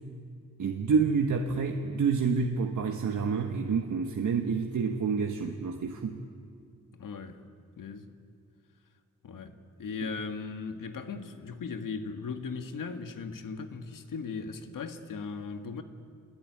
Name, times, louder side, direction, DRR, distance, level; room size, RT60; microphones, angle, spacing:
voice 1, 0.6-6.2, right 5 dB, 65° right, 1.5 m, -28 dB
voice 2, 6.9-7.4 7.8-8.1 9.2-15.8, left 5 dB, 85° left, 1.8 m, -38 dB
27.0 x 21.5 x 9.6 m
wide cardioid pair, 135°, 32 cm